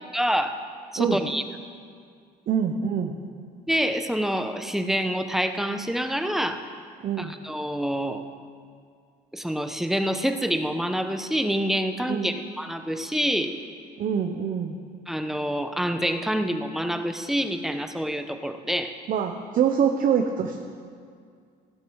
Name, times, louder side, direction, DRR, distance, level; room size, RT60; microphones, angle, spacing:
voice 1, 0.1-0.5 0.9-1.4 3.7-6.6 7.2-8.2 9.3-13.5 15.1-18.9, equal, ahead, 7 dB, 0.9 m, -27 dB
voice 2, 2.5-3.2 7.0-7.4 12.1-12.3 14.0-14.8 19.1-20.6, right 7 dB, 55° right, 4 dB, 0.9 m, -25 dB
15.5 x 12.0 x 4.8 m, 2.2 s
cardioid pair, 110°, 17 cm